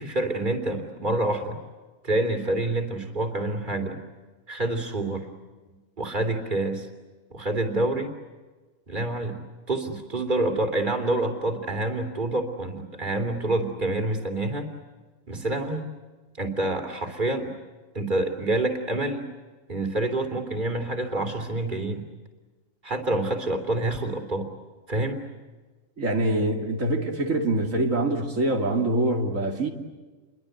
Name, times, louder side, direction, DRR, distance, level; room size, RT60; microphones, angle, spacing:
voice 1, 0.0-1.6 2.0-4.0 4.5-5.3 5.6-6.9 7.3-8.1 8.9-9.4 9.7-14.7 15.3-15.9 16.4-17.5 17.9-19.3 19.7-22.0 22.8-24.5 24.9-25.2, right 2 dB, 40° right, 3.4 m, -27 dB
voice 2, 26.0-29.7, right 1 dB, 90° right, 3.1 m, -24 dB
29.5 x 23.0 x 8.0 m
omnidirectional pair, 1.3 m